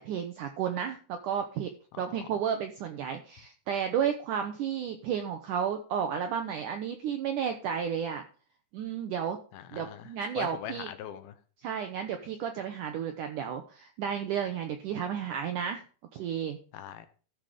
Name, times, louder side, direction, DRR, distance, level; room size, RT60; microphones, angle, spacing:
voice 1, 0.0-1.7 2.0-8.2 8.7-9.4 9.7-10.9 11.6-15.8 16.1-16.6, right 8 dB, 75° right, 1.8 m, -32 dB
voice 2, 1.9-2.3 9.5-10.1 10.4-11.3 16.7-17.1, left 10 dB, 75° left, 2.6 m, -41 dB
14.0 x 5.7 x 5.0 m
omnidirectional pair, 4.7 m